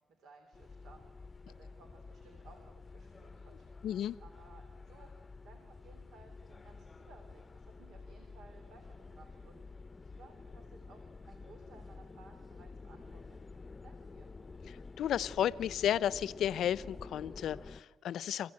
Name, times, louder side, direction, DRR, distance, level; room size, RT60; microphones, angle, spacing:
voice 1, 0.0-3.7 4.2-5.1 5.4-13.4 13.8-14.3, right 4 dB, 75° right, 4 dB, 3.2 m, -60 dB
sound 1, 0.5-17.8, left 4 dB, 25° left, 0.7 m, -50 dB
voice 2, 3.8-4.2 15.0-18.5, left 10 dB, 75° left, 19 dB, 0.6 m, -33 dB
29.5 x 15.0 x 8.7 m, 1.4 s
cardioid pair, 90°, 0 cm